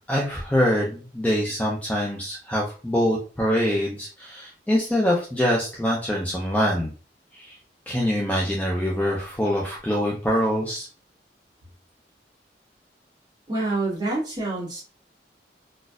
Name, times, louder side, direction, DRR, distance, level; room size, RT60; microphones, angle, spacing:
voice 1, 0.1-6.9 7.3-7.6 7.9-10.9, equal, 10° left, -2 dB, 0.5 m, -24 dB
voice 2, 13.5-14.8, right 2 dB, 25° right, -6 dB, 1.3 m, -27 dB
4.0 x 2.4 x 2.4 m, 0.36 s
head